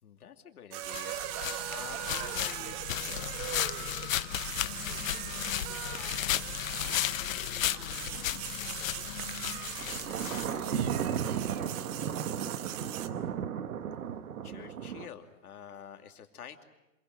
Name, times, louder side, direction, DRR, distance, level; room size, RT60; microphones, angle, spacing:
voice 1, 0.0-1.2 1.7-3.4 14.4-16.6, left 8 dB, 85° left, 6 dB, 2.9 m, -48 dB
sound 1, 0.7-13.1, right 12 dB, 30° right, 1.2 m, -40 dB
sound 2, 0.9-10.9, left 12 dB, 65° left, 1.1 m, -35 dB
voice 2, 4.2-6.5 6.9-9.7 10.1-12.8, left 5 dB, 25° left, 0 dB, 5.9 m, -52 dB
Thunder, 9.8-15.1, right 8 dB, 75° right, 1.8 m, -34 dB
26.5 x 23.0 x 7.7 m, 0.99 s
hypercardioid pair, 150°, 44 cm